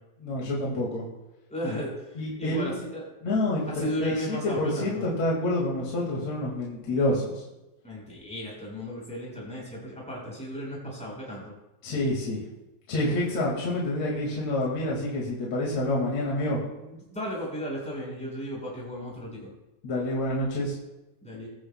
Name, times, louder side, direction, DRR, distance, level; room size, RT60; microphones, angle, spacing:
voice 1, 0.2-1.1 2.2-2.7 3.2-7.4 11.8-12.4 12.9-16.6 19.8-20.8, left 1 dB, 50° left, -4 dB, 2.9 m, -28 dB
voice 2, 1.5-3.0 3.7-5.0 7.8-11.5 16.8-19.5 21.2-21.5, equal, ahead, -4 dB, 4.4 m, -35 dB
21.0 x 10.5 x 2.2 m, 0.99 s
omnidirectional pair, 4.1 m